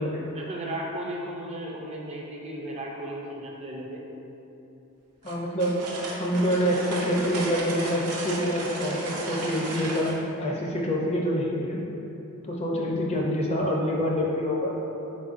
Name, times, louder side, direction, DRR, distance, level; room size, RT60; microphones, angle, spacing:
voice 1, 0.3-4.0, right 1 dB, 30° right, -2 dB, 0.4 m, -35 dB
voice 2, 5.2-5.8 6.1-10.1 10.4-11.8 12.4-14.7, equal, 30° left, -3 dB, 0.5 m, -26 dB
sound 1, 5.2-10.2, right 2 dB, 85° right, 0.6 m, -34 dB
4.1 x 3.8 x 2.5 m, 3.0 s
head